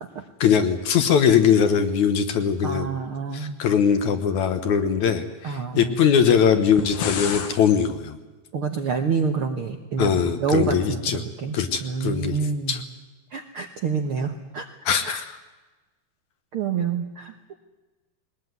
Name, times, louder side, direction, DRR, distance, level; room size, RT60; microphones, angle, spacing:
voice 1, 0.4-2.9 3.3-8.2 10.0-11.2 11.5-12.4 12.7-12.8 14.9-15.3, left 7 dB, 65° left, 9 dB, 2.3 m, -21 dB
voice 2, 2.6-3.6 5.4-6.0 8.5-12.8 13.3-14.7 15.0-15.2 16.5-17.5, right 5 dB, 65° right, 5 dB, 1.4 m, -27 dB
sound 1, 6.6-7.6, left 7 dB, 80° left, 3.7 m, -29 dB
21.0 x 20.0 x 9.5 m, 1.2 s
omnidirectional pair, 4.1 m